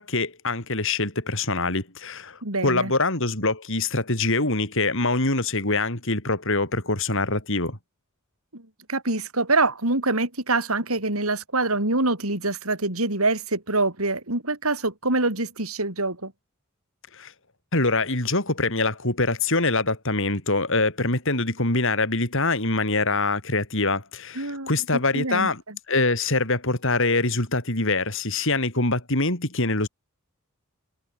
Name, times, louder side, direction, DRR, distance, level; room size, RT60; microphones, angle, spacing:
voice 1, 0.0-7.8 17.1-17.3 17.7-25.6 25.9-29.9, left 3 dB, 65° left, 7.8 m, -24 dB
voice 2, 2.4-2.9 8.5-8.6 8.9-16.3 24.4-24.7 25.1-25.5, right 2 dB, 90° right, 7.5 m, -25 dB
head